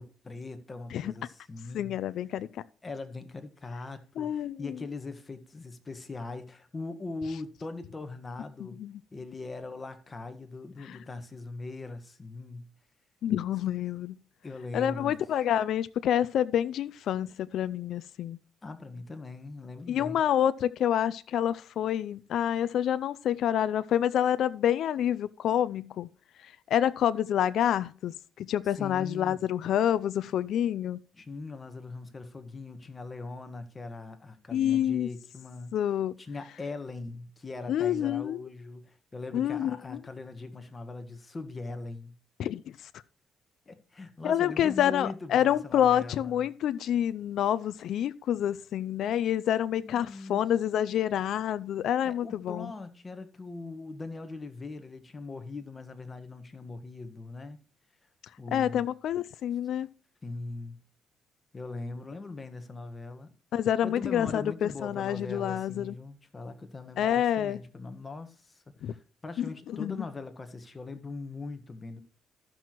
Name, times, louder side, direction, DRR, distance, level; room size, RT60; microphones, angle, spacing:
voice 1, 0.0-2.0 2.8-8.8 9.1-12.7 14.4-15.2 18.6-20.2 28.6-29.4 31.1-35.7 36.2-42.1 43.7-46.5 49.7-50.4 52.0-57.6 58.4-58.9 60.2-60.8 61.5-63.3 63.8-72.0, left 3 dB, 25° left, 1.4 m, -41 dB
voice 2, 1.7-2.5 4.2-4.6 8.8-8.9 10.9-11.0 13.2-14.2 14.7-18.4 19.9-26.1 26.7-28.1 28.4-31.0 34.5-35.1 35.7-36.1 37.7-38.4 39.3-39.7 42.4-42.6 44.2-52.7 58.5-59.9 63.5-65.9 67.0-67.6 68.8-68.9 69.4-69.5 69.8-70.0, left 10 dB, 75° left, 0.4 m, -27 dB
14.0 x 6.0 x 3.0 m
cardioid pair, 90°, 0 cm